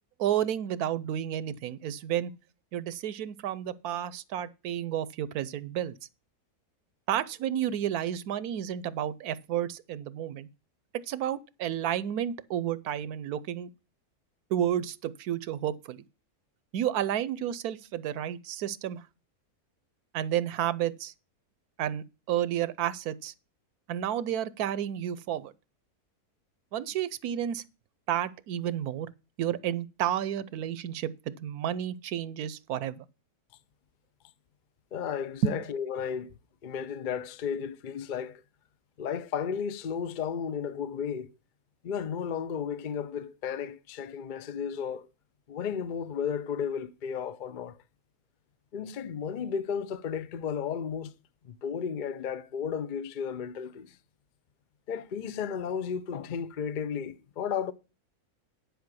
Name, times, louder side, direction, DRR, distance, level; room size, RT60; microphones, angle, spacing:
voice 1, 0.2-2.3 2.7-6.0 7.1-10.5 11.1-13.7 14.5-16.0 16.7-19.0 20.1-21.1 21.8-23.3 23.9-25.5 26.7-27.6 28.1-29.1 29.4-33.1 35.4-35.5, right 10 dB, 75° right, 1.1 m, -31 dB
voice 2, 34.9-36.4 36.6-38.4 39.0-41.3 41.8-45.1 45.5-47.8 48.7-51.1 51.4-54.0 54.9-57.7, left 7 dB, 55° left, 0.5 m, -33 dB
10.5 x 5.0 x 6.1 m
omnidirectional pair, 1.6 m